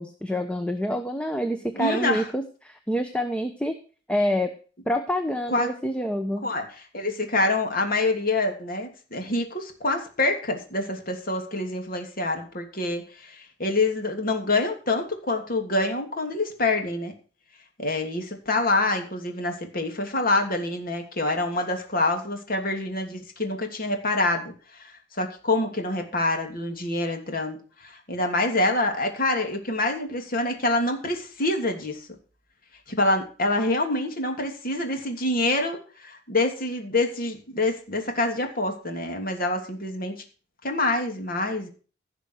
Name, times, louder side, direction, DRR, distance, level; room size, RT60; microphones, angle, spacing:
voice 1, 0.0-3.8 4.1-4.5 4.9-6.5, equal, 5° left, 7 dB, 1.0 m, -27 dB
voice 2, 1.7-2.3 5.5-5.7 6.4-6.6 6.9-13.3 13.6-17.1 17.8-24.9 25.2-32.0 32.9-40.1 40.6-41.7, left 2 dB, 50° left, 4 dB, 3.0 m, -26 dB
16.0 x 5.9 x 6.5 m, 0.37 s
head